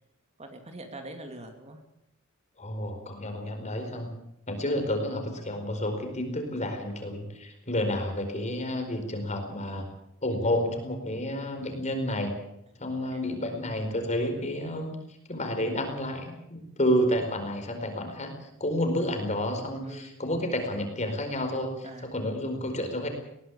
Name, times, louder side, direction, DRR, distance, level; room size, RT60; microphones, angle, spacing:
voice 1, 0.4-1.8 13.1-13.6 19.9-20.1 21.8-22.1, right 1 dB, 30° right, 5 dB, 2.7 m, -44 dB
voice 2, 2.6-4.1 4.5-9.9 10.2-12.3 12.8-14.9 15.3-23.1, left 1 dB, 35° left, 5 dB, 4.7 m, -30 dB
20.5 x 18.0 x 8.4 m, 0.78 s
head